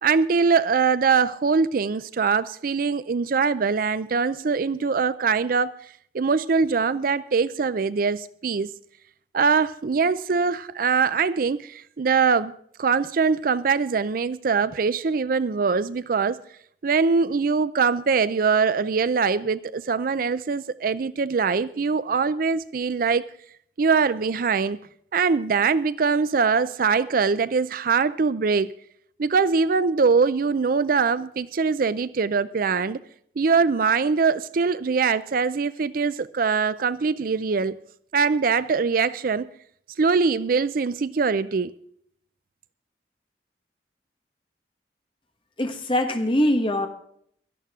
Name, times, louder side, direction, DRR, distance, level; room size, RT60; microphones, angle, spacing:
voice 1, 0.0-5.7 6.1-8.7 9.3-12.5 12.8-16.4 16.8-23.3 23.8-24.8 25.1-28.8 29.2-33.0 33.4-37.8 38.1-39.5 40.0-41.7, right 5 dB, 55° right, 0.4 m, -22 dB
voice 2, 45.6-46.9, left 1 dB, 30° left, 1.4 m, -22 dB
17.5 x 12.5 x 3.7 m
head